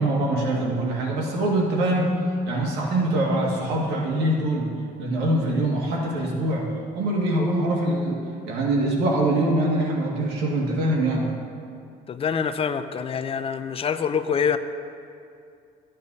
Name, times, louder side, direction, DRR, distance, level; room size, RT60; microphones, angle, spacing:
voice 1, 0.0-2.2 2.5-4.7 5.0-8.2 8.5-11.3, right 1 dB, 90° right, -2 dB, 1.9 m, -23 dB
voice 2, 12.1-14.6, left 7 dB, 35° left, 11 dB, 0.4 m, -25 dB
13.5 x 8.7 x 2.7 m, 2.4 s
cardioid pair, 110°, 17 cm